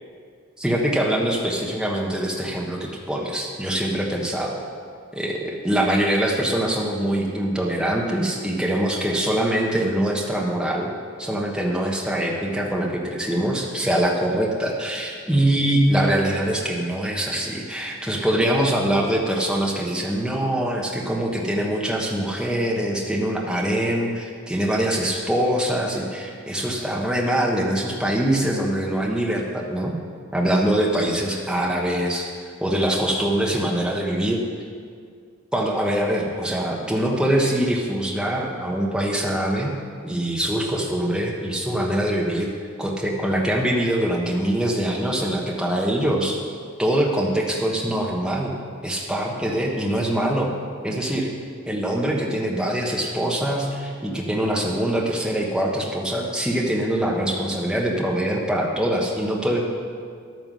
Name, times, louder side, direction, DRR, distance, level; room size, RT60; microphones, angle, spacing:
voice 1, 0.6-4.6 5.1-10.9 11.2-30.0 30.3-32.3 32.6-34.4 35.5-39.7 40.0-42.5 42.8-46.4 46.8-48.5 48.8-50.5 50.8-51.3 51.7-59.6, right 1 dB, 5° right, -2 dB, 1.2 m, -23 dB
12.0 x 9.2 x 6.2 m, 2.1 s
head